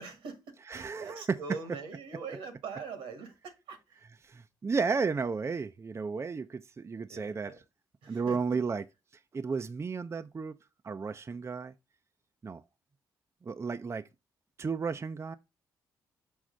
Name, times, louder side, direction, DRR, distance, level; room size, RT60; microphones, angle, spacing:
voice 1, 0.0-4.0 7.1-7.6 8.0-8.4, right 5 dB, 80° right, 1.4 m, -43 dB
voice 2, 0.7-1.4 4.2-7.5 8.1-8.8 9.3-10.6 10.8-11.7 12.4-12.6 13.4-14.1 14.6-15.4, right 5 dB, 30° right, 0.5 m, -33 dB
6.3 x 3.1 x 5.1 m
hypercardioid pair, 45°, 9 cm